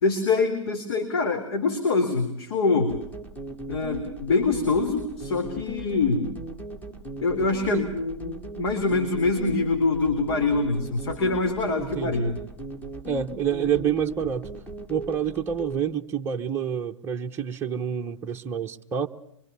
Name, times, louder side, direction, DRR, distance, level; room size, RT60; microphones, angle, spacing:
voice 1, 0.0-3.0 3.7-6.3 7.2-12.4, left 3 dB, 55° left, 5 dB, 3.7 m, -24 dB
sound 1, 2.9-15.8, right 2 dB, 10° left, 3.6 m, -38 dB
voice 2, 11.8-12.3 13.1-14.5 14.9-19.1, right 8 dB, 15° right, 2 dB, 1.1 m, -28 dB
25.0 x 24.0 x 7.0 m, 0.76 s
figure-of-eight pair, 120°, 16 cm